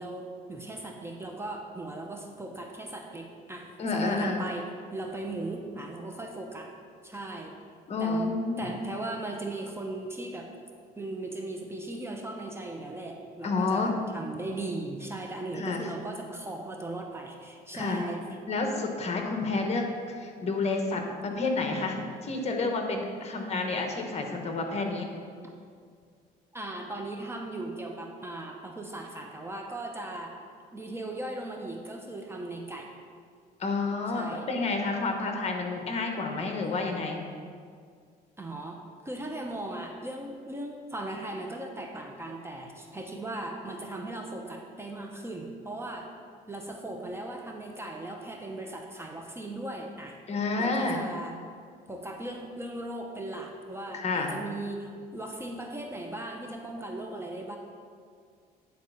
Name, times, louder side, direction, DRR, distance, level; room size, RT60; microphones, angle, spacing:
voice 1, 0.0-6.7 7.0-7.5 8.0-8.3 8.6-10.5 11.0-18.2 26.5-30.3 30.7-32.9 34.1-34.5 38.4-46.1 46.5-50.2 50.6-51.4 51.9-57.6, right 2 dB, 15° right, 2 dB, 0.7 m, -38 dB
voice 2, 3.8-4.4 7.9-8.7 13.4-13.9 15.6-15.8 17.7-18.0 18.5-25.1 33.6-37.2 50.3-51.0 53.9-54.4, left 3 dB, 40° left, 3 dB, 1.1 m, -30 dB
9.5 x 4.2 x 5.7 m, 2.2 s
cardioid pair, 110°, 17 cm